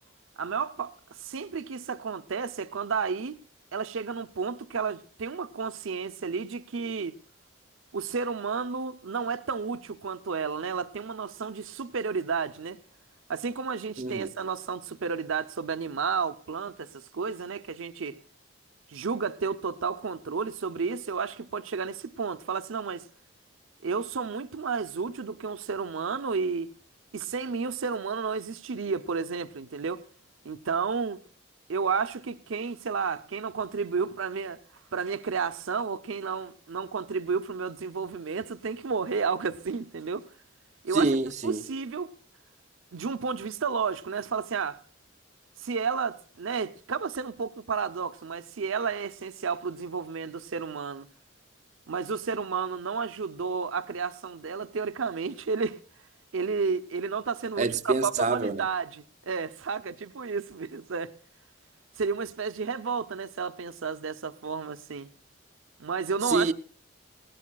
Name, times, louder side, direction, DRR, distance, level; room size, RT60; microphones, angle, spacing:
voice 1, 0.4-3.4 3.7-7.2 7.9-12.8 13.3-18.2 18.9-23.1 23.8-26.7 27.1-30.0 30.4-31.2 31.7-34.6 34.9-40.3 40.8-41.1 41.4-42.1 42.9-44.8 45.6-51.1 51.9-55.8 56.3-61.1 62.0-65.1 65.8-66.5, right 5 dB, 80° right, 0.6 m, -31 dB
voice 2, 14.0-14.3 40.9-41.6 57.6-58.6 66.2-66.5, right 3 dB, 35° right, 0.5 m, -26 dB
19.5 x 16.5 x 2.3 m
head